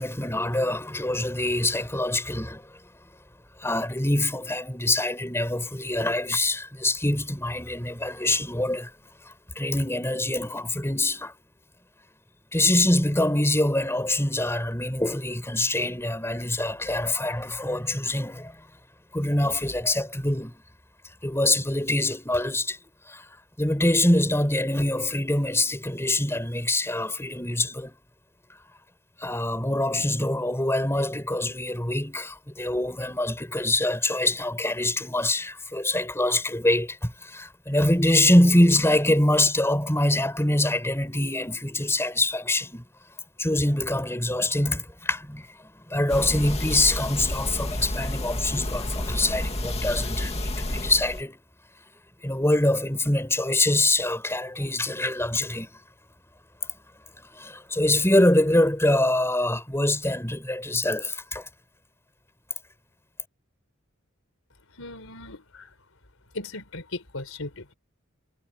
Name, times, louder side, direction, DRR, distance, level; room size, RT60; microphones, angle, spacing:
voice 1, 0.0-2.7 3.6-8.9 9.5-11.3 12.5-18.6 19.1-20.6 21.2-22.8 23.1-23.2 23.6-28.0 29.2-42.8 43.4-51.4 52.2-55.7 57.3-61.5, left 1 dB, 10° left, 4.8 m, -24 dB
sound 1, 46.1-51.2, left 1 dB, 30° left, 2.2 m, -30 dB
voice 2, 64.8-65.7 66.3-67.7, left 2 dB, 85° left, 4.0 m, -37 dB
head